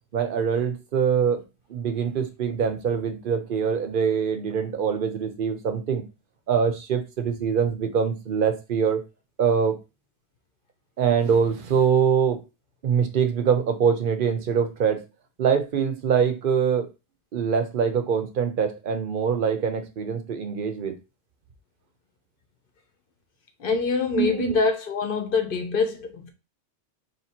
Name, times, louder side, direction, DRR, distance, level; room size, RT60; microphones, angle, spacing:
voice 1, 0.1-1.4 1.7-6.0 6.5-9.0 9.4-9.8 11.0-12.4 12.8-15.0 15.4-16.9 17.3-21.0 24.1-24.6, right 7 dB, 55° right, 0.8 m, -24 dB
voice 2, 23.6-26.3, left 4 dB, 55° left, 1.0 m, -25 dB
3.2 x 2.9 x 4.3 m
omnidirectional pair, 1.2 m